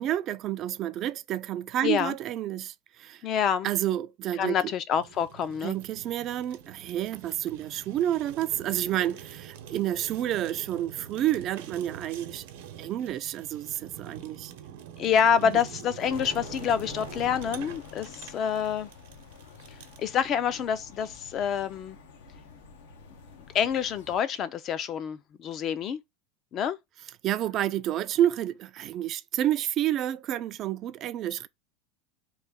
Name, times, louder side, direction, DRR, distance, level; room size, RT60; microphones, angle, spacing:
voice 1, 0.0-3.2 3.6-4.7 5.6-12.5 12.8-14.5 27.2-31.5, right 12 dB, 40° right, 0.3 m, -29 dB
voice 2, 1.8-2.1 3.2-3.7 4.4-5.7 15.0-18.9 19.7-22.0 23.5-26.0 26.5-26.8, left 8 dB, 35° left, 0.4 m, -27 dB
Fire, 4.9-20.1, right 9 dB, 75° right, 0.8 m, -45 dB
sound 1, 16.0-24.2, left 5 dB, 90° left, 0.9 m, -47 dB
3.1 x 2.6 x 3.5 m
supercardioid pair, 145°, 0 cm